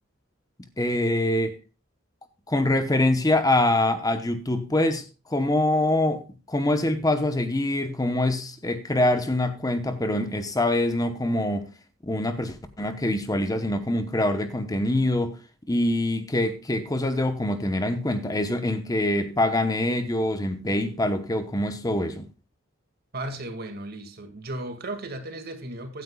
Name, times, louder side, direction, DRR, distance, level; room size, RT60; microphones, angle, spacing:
voice 1, 0.8-1.6 2.5-11.7 12.0-15.4 15.7-22.2, left 1 dB, 20° left, 0.9 m, -24 dB
voice 2, 23.1-26.0, right 1 dB, 50° right, 2.1 m, -35 dB
16.0 x 9.4 x 2.3 m
head